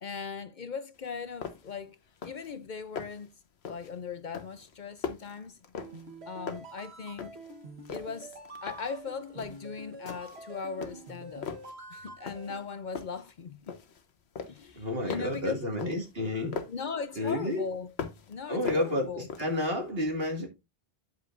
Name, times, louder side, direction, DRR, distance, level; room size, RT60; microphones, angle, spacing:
voice 1, 0.0-2.0 2.2-3.3 3.7-5.6 6.3-7.4 7.9-8.4 8.6-11.5 11.9-13.7 14.5-15.8 16.7-17.9 18.3-19.3, left 5 dB, 55° left, 0.7 m, -39 dB
sound 1, 1.0-1.1 1.4-1.8 2.1-2.5 2.8-3.3 3.6-4.0 4.3-6.2 6.5-7.5 7.8-9.0 9.4-9.7 10.1-10.5 10.8-11.8 12.3-12.6 12.9-14.0 14.4-16.9 17.3-18.3 18.6-19.7, left 6 dB, 90° left, 1.2 m, -40 dB
sound 2, 5.8-12.6, right 2 dB, 85° right, 1.5 m, -46 dB
voice 2, 14.8-16.6 17.2-17.6 18.5-20.5, left 1 dB, 70° right, 2.4 m, -30 dB
9.2 x 8.1 x 2.5 m
omnidirectional pair, 1.0 m